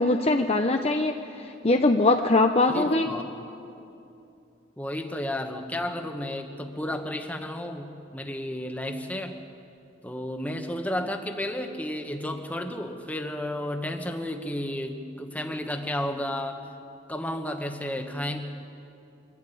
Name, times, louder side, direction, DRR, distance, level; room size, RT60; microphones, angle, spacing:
voice 1, 0.0-3.1, left 2 dB, 30° left, 5 dB, 0.6 m, -22 dB
voice 2, 2.7-3.2 4.8-9.4 10.0-16.7 17.1-18.4, left 1 dB, 10° left, 5 dB, 1.1 m, -32 dB
24.0 x 12.0 x 9.2 m, 2.7 s
head